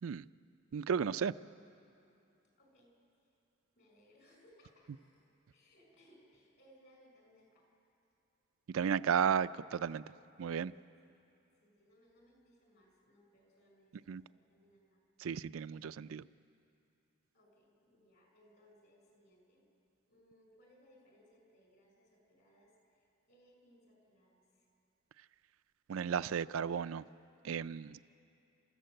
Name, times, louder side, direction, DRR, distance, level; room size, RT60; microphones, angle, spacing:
voice 1, 0.7-1.4 8.7-10.0 10.4-10.7 14.1-14.2 15.2-16.3 25.9-27.0 27.4-28.0, right 7 dB, 80° right, 14 dB, 0.4 m, -34 dB
voice 2, 2.6-2.9 3.2-3.3 3.7-5.2 5.5-7.7 11.5-15.0 17.3-19.7 20.1-24.7, equal, 55° left, 1 dB, 5.7 m, -66 dB
30.0 x 14.5 x 7.8 m, 2.7 s
head